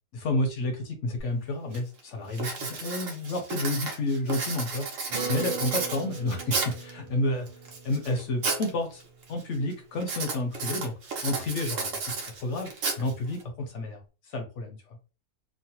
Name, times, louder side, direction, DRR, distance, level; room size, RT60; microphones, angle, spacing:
voice 1, 0.1-4.8 5.3-7.5 7.8-9.0 9.3-10.9 11.2-12.7 13.0-14.0 14.3-14.8, left 2 dB, 65° left, 4 dB, 0.8 m, -30 dB
Writing, 1.2-1.3 1.7-2.0 2.3-6.9 7.5-8.7 9.0-9.4 10.0-13.4, right 4 dB, 65° right, 1.1 m, -33 dB
Acoustic guitar, 5.1-9.8, right 5 dB, 35° right, 0.6 m, -40 dB
3.1 x 2.1 x 2.8 m, 0.34 s
omnidirectional pair, 1.6 m